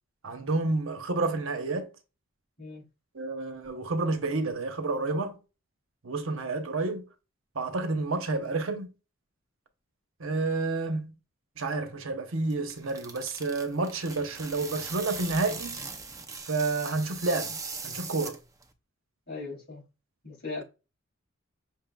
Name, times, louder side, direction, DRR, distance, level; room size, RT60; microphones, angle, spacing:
voice 1, 0.2-1.9 3.1-5.4 6.0-7.0 7.5-8.9 10.2-11.1 11.6-15.8 16.5-18.4, right 3 dB, 85° right, 0.9 m, -30 dB
sound 1, 12.3-18.7, right 4 dB, 15° right, 0.6 m, -40 dB
voice 2, 19.3-19.9 20.2-20.6, left 3 dB, 50° left, 2.9 m, -38 dB
6.1 x 3.7 x 2.3 m
head